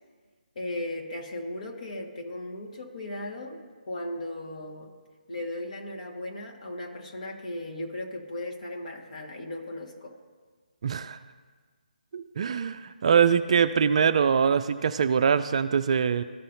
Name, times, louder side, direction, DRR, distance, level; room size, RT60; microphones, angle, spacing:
voice 1, 0.5-3.6 3.8-4.9 5.3-10.1, left 1 dB, 50° left, 0 dB, 1.6 m, -36 dB
voice 2, 10.8-11.2 12.1-16.2, right 7 dB, 45° right, 10 dB, 0.3 m, -23 dB
14.0 x 5.5 x 2.7 m, 1.5 s
figure-of-eight pair, 155°, 5 cm